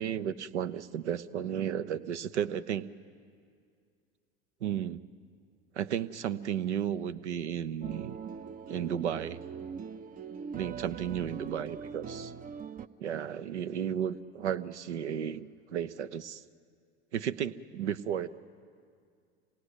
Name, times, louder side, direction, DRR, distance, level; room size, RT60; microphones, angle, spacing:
voice 1, 0.0-2.9 4.6-5.0 5.7-8.2 8.7-9.4 10.5-12.3 13.0-16.4 17.1-18.3, right 9 dB, 80° right, 13 dB, 0.8 m, -33 dB
sound 1, 7.8-12.9, right 6 dB, 25° right, 0.6 m, -41 dB
26.5 x 18.0 x 8.1 m, 2.2 s
hypercardioid pair, 80°, 34 cm